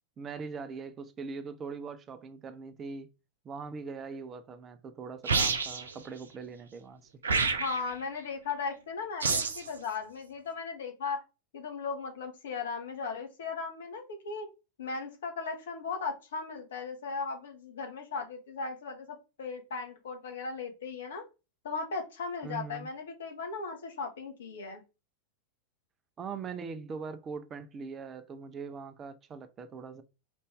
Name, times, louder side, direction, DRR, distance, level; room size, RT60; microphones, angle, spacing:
voice 1, 0.2-3.1 3.4-7.0 22.4-22.9 26.2-30.0, right 5 dB, 25° right, 0.6 m, -41 dB
sound 1, 5.3-5.9 7.2-7.9 9.2-9.7, right 4 dB, 70° right, 0.5 m, -28 dB
voice 2, 7.4-11.2 11.5-14.5 14.8-21.2 21.6-24.8, left 4 dB, 60° left, 1.1 m, -37 dB
5.1 x 2.6 x 3.5 m
figure-of-eight pair, 90°, 0 cm